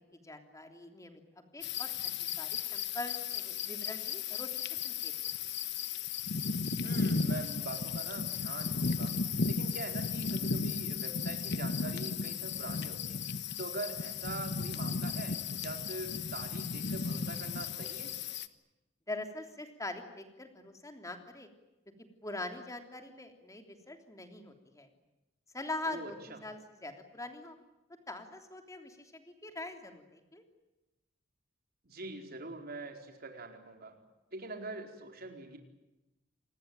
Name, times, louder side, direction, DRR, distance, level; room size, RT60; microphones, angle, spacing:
voice 1, 0.2-1.9 2.2-4.5 4.8-5.1 19.1-21.5 22.2-24.9 25.5-27.6 28.1-30.4, left 2 dB, 15° left, 5 dB, 3.3 m, -43 dB
sound 1, 1.6-18.5, left 5 dB, 60° left, 1.2 m, -35 dB
voice 2, 6.8-9.2 9.5-13.2 13.6-18.2 25.9-26.4 31.8-34.0 34.3-35.6, right 2 dB, 50° right, 4 dB, 4.4 m, -43 dB
28.0 x 20.0 x 9.0 m, 0.99 s
head